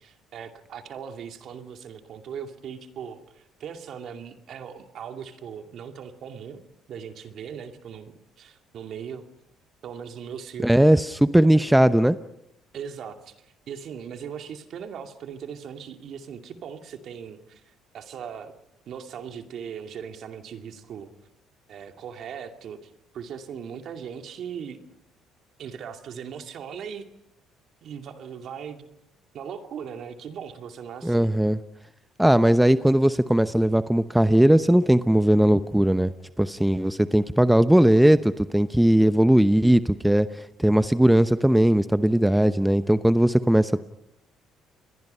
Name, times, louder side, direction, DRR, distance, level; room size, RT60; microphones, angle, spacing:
voice 1, 0.0-6.6 6.9-9.2 9.8-10.9 12.7-18.5 18.9-21.1 21.7-24.8 25.6-27.0 27.8-28.9 29.3-31.3, right 7 dB, 60° right, 5 dB, 2.4 m, -39 dB
voice 2, 10.6-12.2 31.0-31.6 32.2-36.1 36.4-40.3 40.6-43.9, right 1 dB, 5° right, 12 dB, 0.9 m, -19 dB
29.5 x 22.0 x 5.6 m, 0.81 s
supercardioid pair, 65°, 0 cm